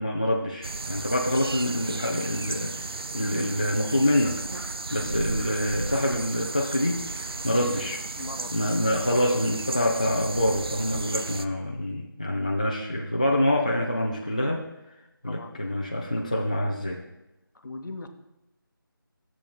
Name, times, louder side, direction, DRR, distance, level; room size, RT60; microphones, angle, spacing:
voice 1, 0.0-4.4 4.9-8.0 8.5-14.6 15.2-17.0, left 1 dB, 20° left, -2 dB, 0.3 m, -26 dB
sound 1, 0.6-11.5, right 3 dB, 90° right, 0.5 m, -34 dB
voice 2, 4.9-5.3 5.9-6.1 8.1-8.9 15.2-15.6 17.6-18.1, left 2 dB, 55° left, 7 dB, 0.8 m, -41 dB
13.5 x 7.1 x 2.2 m, 0.96 s
figure-of-eight pair, 170°, 12 cm